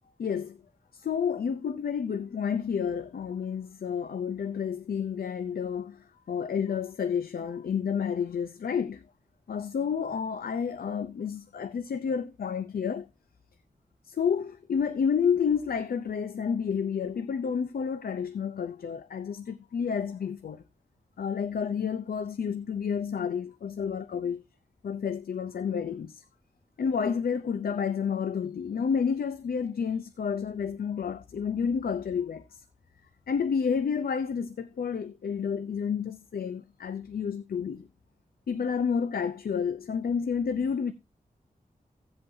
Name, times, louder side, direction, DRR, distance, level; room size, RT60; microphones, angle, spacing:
voice 1, 0.2-0.6 0.9-9.1 9.5-13.1 14.1-20.6 21.2-24.4 24.8-26.2 26.8-32.6 33.3-37.9 38.5-40.9, left 6 dB, 80° left, 0.5 m, -30 dB
15.5 x 7.9 x 2.7 m
wide cardioid pair, 110°, 15 cm